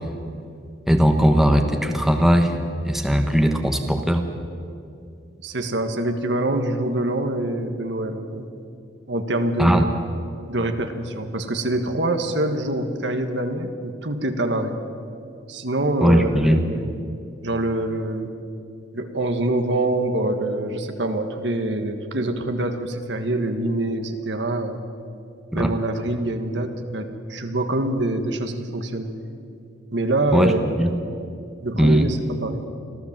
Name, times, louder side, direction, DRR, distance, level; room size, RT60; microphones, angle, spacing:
voice 1, 0.9-2.5 2.8-4.2 9.6-9.8 16.0-16.6 25.5-25.7 30.3-30.5 30.8-30.9 31.8-32.1, equal, ahead, 4 dB, 1.2 m, -18 dB
voice 2, 5.4-8.5 9.1-9.9 10.5-14.8 15.5-16.9 17.4-18.3 18.9-24.8 25.5-29.1 29.9-30.8 31.6-32.7, right 1 dB, 70° right, 6 dB, 1.5 m, -25 dB
25.5 x 15.0 x 7.5 m, 2.5 s
head